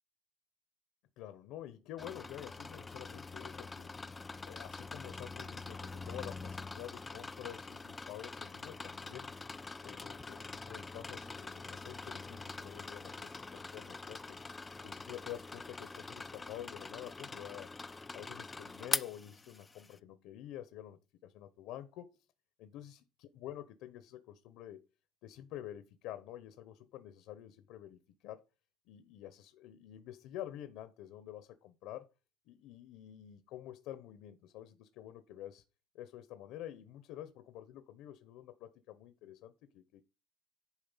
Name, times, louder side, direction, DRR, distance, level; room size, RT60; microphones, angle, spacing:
voice 1, 1.2-3.9 4.4-9.4 9.8-14.4 14.8-17.7 18.1-22.2 22.6-24.9 25.2-28.4 28.9-32.1 32.5-35.6 35.9-40.0, left 12 dB, 70° left, 1.1 m, -48 dB
sound 1, 2.0-20.0, left 3 dB, 15° left, 0.5 m, -44 dB
11.0 x 4.4 x 5.8 m
cardioid pair, 160°, 0 cm